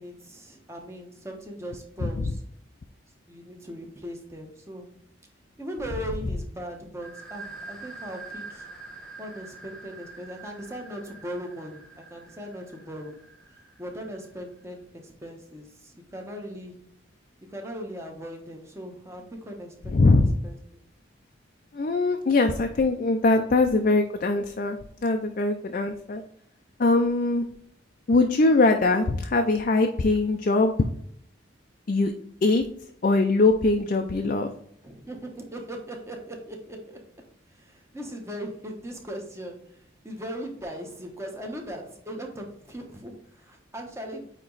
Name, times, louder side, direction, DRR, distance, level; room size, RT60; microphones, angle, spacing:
voice 1, 0.0-2.4 3.3-4.9 5.6-8.7 9.2-13.2 13.5-16.8 17.5-20.6 27.0-27.2 34.8-37.0 37.5-44.3, equal, 15° right, 1 dB, 1.0 m, -39 dB
voice 2, 2.0-2.3 19.9-20.3 21.7-24.8 25.0-26.2 26.8-27.5 28.1-30.7 31.9-32.1 32.4-32.6 33.0-34.5, left 3 dB, 45° left, 5 dB, 0.4 m, -22 dB
sound 1, 7.0-14.5, right 3 dB, 5° left, 1.3 m, -45 dB
8.7 x 3.0 x 4.0 m, 0.68 s
head